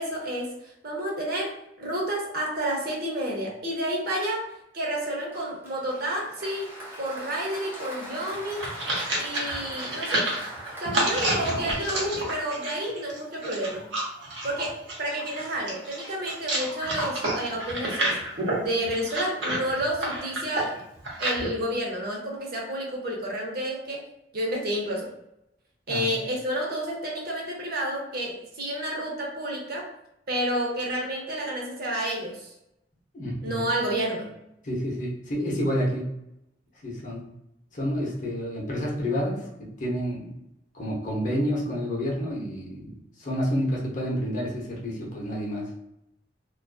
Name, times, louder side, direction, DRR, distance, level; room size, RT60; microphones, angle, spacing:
voice 1, 0.0-4.4 4.7-6.7 7.0-8.6 9.1-10.3 10.8-13.8 14.4-18.2 18.6-20.8 21.2-24.1 24.3-25.1 25.9-29.9 30.3-32.5 33.4-34.4, right 1 dB, 60° right, -1 dB, 0.7 m, -30 dB
Applause, 5.3-12.4, right 1 dB, 15° right, 0.6 m, -41 dB
sound 1, 8.3-21.5, right 1 dB, 90° right, 0.8 m, -29 dB
voice 2, 33.1-33.7 34.6-36.1 36.8-37.3 37.7-40.4 40.7-42.9 43.2-45.7, equal, 45° left, -2 dB, 0.7 m, -29 dB
2.5 x 2.3 x 2.2 m, 0.81 s
head